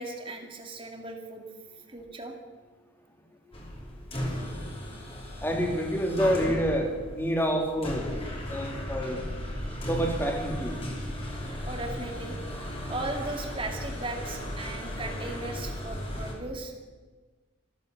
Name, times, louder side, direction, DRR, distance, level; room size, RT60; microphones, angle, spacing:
voice 1, 0.0-1.4 1.9-2.3 9.6-9.9 11.7-12.3 12.9-16.7, right 2 dB, 25° right, 3 dB, 2.1 m, -37 dB
sound 1, 3.5-16.3, equal, 25° left, 3.0 m, -36 dB
voice 2, 5.4-8.1 8.5-9.2 9.8-10.8, equal, 10° left, 2 dB, 2.5 m, -27 dB
14.5 x 14.0 x 6.7 m, 1.3 s
head